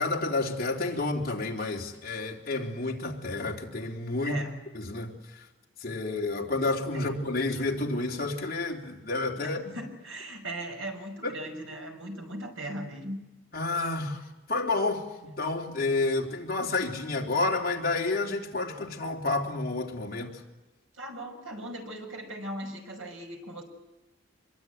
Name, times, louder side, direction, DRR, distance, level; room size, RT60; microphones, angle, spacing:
voice 1, 0.0-4.4 4.7-5.1 5.8-9.8 11.2-11.3 13.5-14.2 14.5-20.4, left 3 dB, 45° left, -1 dB, 3.6 m, -30 dB
voice 2, 4.2-4.6 6.9-7.2 9.4-13.2 21.0-23.6, right 1 dB, 80° right, 4 dB, 5.8 m, -38 dB
26.0 x 22.5 x 9.4 m, 1.0 s
head